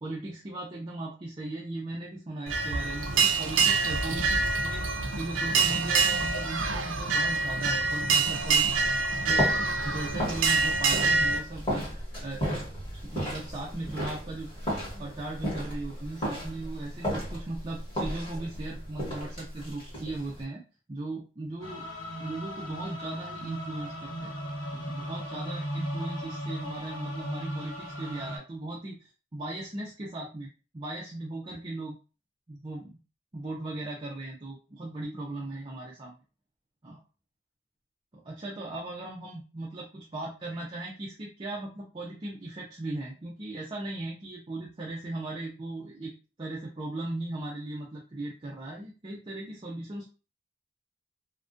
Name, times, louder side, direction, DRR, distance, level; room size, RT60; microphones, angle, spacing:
voice 1, 0.0-9.0 9.3-12.4 13.0-14.5 15.0-21.9 22.2-24.3 24.7-32.0 32.5-33.0 33.3-36.1 36.8-37.0 38.1-46.1 46.4-50.1, right 2 dB, 25° right, -4 dB, 0.4 m, -38 dB
sound 1, 2.5-11.4, right 4 dB, 85° right, 0.4 m, -26 dB
sound 2, 8.3-20.4, equal, 25° left, 1.1 m, -35 dB
sound 3, 21.6-28.4, equal, 85° left, 0.9 m, -37 dB
2.3 x 2.1 x 2.5 m, 0.33 s
head